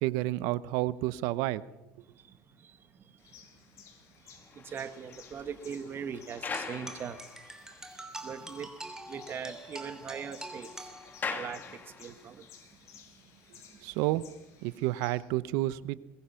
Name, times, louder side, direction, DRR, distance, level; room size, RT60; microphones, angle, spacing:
voice 1, 0.0-1.6 13.8-14.2 14.6-16.0, right 17 dB, 80° right, 0.9 m, -30 dB
voice 2, 2.0-3.5 3.7-3.8 4.2-7.3 7.8-10.9 11.2-12.9 13.1-14.0, right 7 dB, 40° right, 1.6 m, -42 dB
sound 1, 3.2-15.2, left 8 dB, 55° left, 6.5 m, -57 dB
sound 2, 4.3-7.8 8.3-8.4 8.8-8.9 9.1-12.4, left 5 dB, 30° left, 2.5 m, -43 dB
sound 3, 6.5-11.5, right 2 dB, 10° right, 3.0 m, -45 dB
22.0 x 21.5 x 5.8 m
cardioid pair, 115°, 6 cm